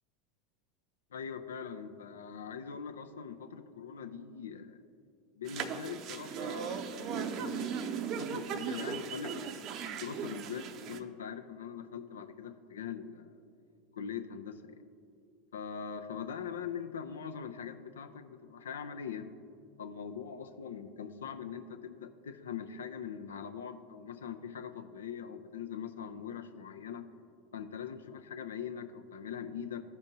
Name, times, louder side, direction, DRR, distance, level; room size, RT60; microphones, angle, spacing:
voice 1, 1.1-4.8 5.4-13.3 13.9-14.6 15.5-19.3 19.8-27.0 27.5-29.8, left 7 dB, 80° left, 9 dB, 0.5 m, -42 dB
sound 1, 5.5-11.0, right 7 dB, 45° right, 0.5 m, -37 dB
14.0 x 5.2 x 2.7 m, 2.4 s
hypercardioid pair, 85°, 0 cm